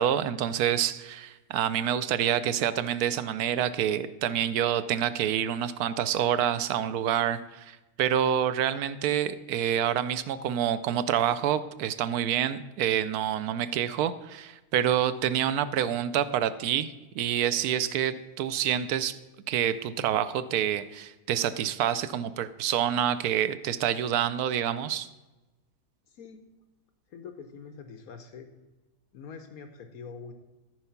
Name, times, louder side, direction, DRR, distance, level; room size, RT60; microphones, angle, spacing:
voice 1, 0.0-19.2 19.5-25.1, right 10 dB, 80° right, 13 dB, 1.1 m, -27 dB
voice 2, 26.1-26.4 27.1-28.5 29.1-30.3, left 5 dB, 70° left, 7 dB, 1.2 m, -44 dB
13.5 x 4.7 x 5.8 m, 1.1 s
omnidirectional pair, 1.6 m